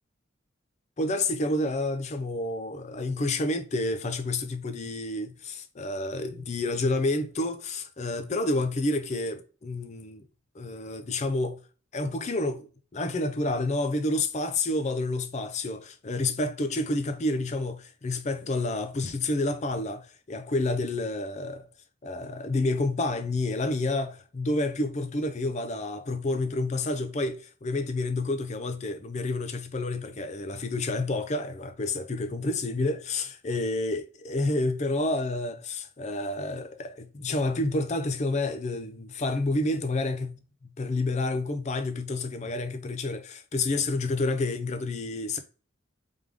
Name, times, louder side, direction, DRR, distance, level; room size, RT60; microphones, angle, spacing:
voice 1, 1.0-10.3 10.5-11.6 11.9-21.7 22.0-45.4, left 2 dB, 35° left, 0.5 m, -29 dB
3.5 x 3.5 x 3.5 m
head